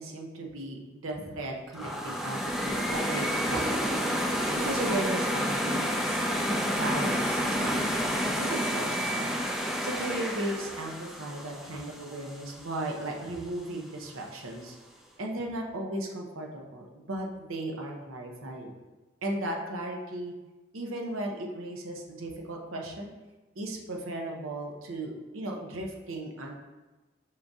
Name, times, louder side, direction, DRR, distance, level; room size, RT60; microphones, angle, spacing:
voice 1, 0.0-6.2 6.8-9.4 9.8-14.8 15.2-18.7 19.2-20.3 20.7-23.1 23.6-26.6, right 1 dB, 85° right, 1 dB, 0.8 m, -36 dB
sound 1, 1.7-12.7, equal, ahead, 0.3 m, -30 dB
5.6 x 2.6 x 3.5 m, 1.2 s
head